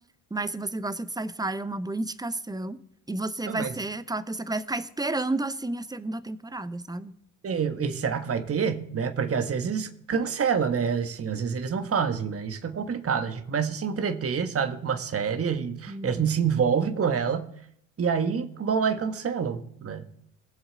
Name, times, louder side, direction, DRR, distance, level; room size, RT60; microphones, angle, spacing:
voice 1, 0.3-2.8 3.1-7.1 15.9-16.3, right 2 dB, 10° right, 13 dB, 0.9 m, -31 dB
voice 2, 7.4-17.5 18.0-20.1, right 6 dB, 30° right, 7 dB, 1.3 m, -27 dB
20.0 x 7.1 x 3.9 m, 0.68 s
hypercardioid pair, 55°, 43 cm